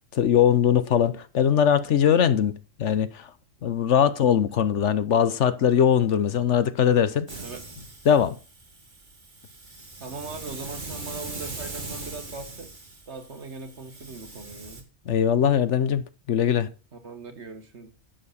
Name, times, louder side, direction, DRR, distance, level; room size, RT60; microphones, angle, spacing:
voice 1, 0.1-3.3 3.6-7.3 8.1-8.4 15.1-16.7, left 8 dB, 65° left, 1.1 m, -21 dB
Hiss, 7.3-14.8, right 2 dB, 35° right, 2.0 m, -40 dB
voice 2, 7.3-7.6 10.0-12.7 13.1-14.8 16.9-17.9, right 4 dB, 55° right, 2.0 m, -40 dB
11.0 x 7.7 x 4.2 m
omnidirectional pair, 1.4 m